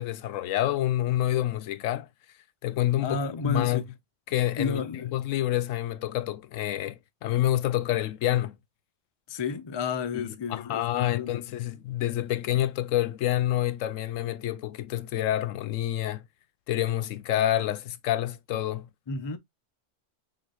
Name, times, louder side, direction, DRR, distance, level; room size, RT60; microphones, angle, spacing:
voice 1, 0.0-2.1 2.6-3.8 4.3-8.6 10.1-16.3 16.7-18.9, left 13 dB, 85° left, 1.0 m, -28 dB
voice 2, 3.0-3.8 4.6-5.1 9.3-11.4 19.1-19.4, left 4 dB, 40° left, 0.4 m, -32 dB
5.3 x 3.8 x 2.4 m
omnidirectional pair, 1.3 m